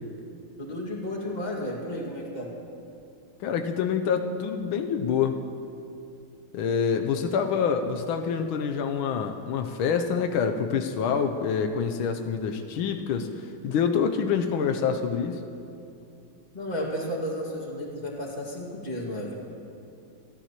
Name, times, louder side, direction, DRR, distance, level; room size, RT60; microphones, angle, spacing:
voice 1, 0.6-2.5 16.5-19.3, equal, 20° left, -2 dB, 1.9 m, -33 dB
voice 2, 3.4-5.4 6.5-15.4, left 6 dB, 85° left, 6 dB, 1.5 m, -26 dB
27.5 x 11.0 x 2.9 m, 2.7 s
omnidirectional pair, 2.2 m